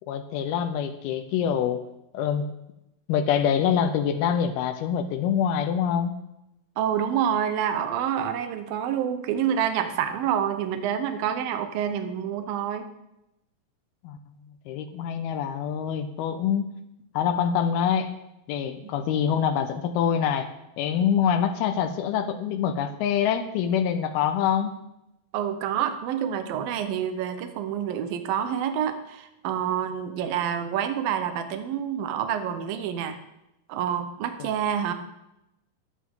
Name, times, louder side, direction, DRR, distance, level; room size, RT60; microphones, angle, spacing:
voice 1, 0.1-1.9 2.1-2.5 3.1-6.1 14.0-14.2 14.7-16.7 17.1-18.1 18.5-20.5 20.8-24.8, left 8 dB, 90° left, 8 dB, 2.7 m, -25 dB
voice 2, 6.8-12.9 18.8-18.9 25.3-33.2 33.7-34.9, right 9 dB, 75° right, 8 dB, 2.7 m, -27 dB
21.5 x 8.3 x 3.8 m, 0.88 s
omnidirectional pair, 4.3 m